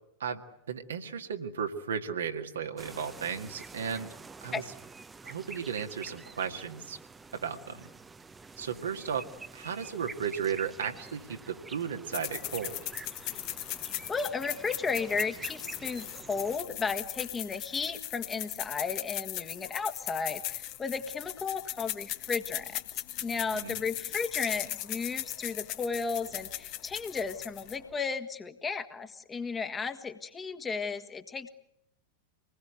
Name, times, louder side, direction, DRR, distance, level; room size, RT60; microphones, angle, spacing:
voice 1, 0.7-4.1 4.4-4.6 5.2-7.0 7.3-7.9 8.6-9.3 9.5-12.8 23.5-23.8, right 7 dB, 65° right, 5 dB, 1.9 m, -35 dB
sound 1, 2.8-16.6, right 4 dB, 15° right, 0.9 m, -47 dB
sound 2, 12.1-27.9, left 14 dB, 45° left, 1.4 m, -38 dB
voice 2, 14.1-22.8 23.2-31.5, left 5 dB, 15° left, 7 dB, 1.7 m, -34 dB
26.0 x 20.0 x 9.4 m, 0.80 s
figure-of-eight pair, 90°, 0 cm